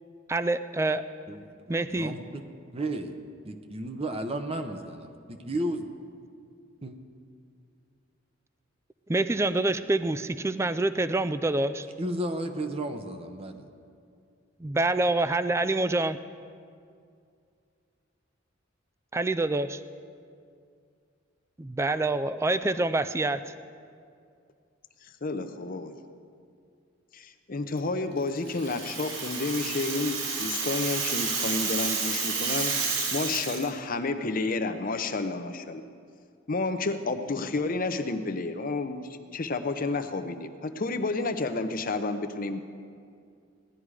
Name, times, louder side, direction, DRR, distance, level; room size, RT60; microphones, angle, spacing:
voice 1, 0.3-1.0 1.7-2.1 9.1-11.9 14.6-16.2 19.1-19.7 21.6-23.5, right 2 dB, 15° right, 12 dB, 0.3 m, -26 dB
voice 2, 1.3-5.9 6.8-7.0 12.0-13.7, right 1 dB, 30° right, 6 dB, 0.8 m, -34 dB
voice 3, 25.2-26.0 27.1-32.8 33.1-35.8 36.5-39.0 39.3-42.6, left 3 dB, 45° left, 8 dB, 0.8 m, -30 dB
Rattle (instrument), 28.5-33.7, right 4 dB, 65° right, 2.6 m, -30 dB
17.0 x 11.5 x 4.9 m, 2.3 s
head